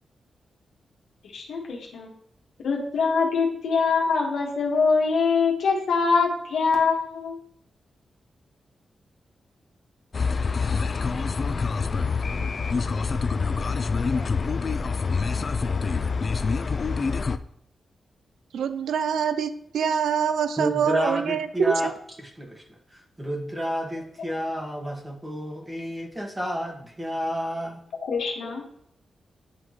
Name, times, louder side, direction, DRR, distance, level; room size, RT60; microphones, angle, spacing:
voice 1, 1.3-2.1 2.6-7.3 28.0-28.6, left 5 dB, 85° left, 0 dB, 1.5 m, -23 dB
sound 1, 10.1-17.4, left 4 dB, 50° left, 0.3 m, -26 dB
voice 2, 18.5-21.7, right 7 dB, 85° right, 12 dB, 0.4 m, -25 dB
voice 3, 20.6-21.9 22.2-22.6 22.9-27.8 28.4-28.5, equal, 15° right, 1 dB, 1.6 m, -30 dB
9.8 x 3.7 x 3.0 m, 0.70 s
cardioid pair, 65°, 0 cm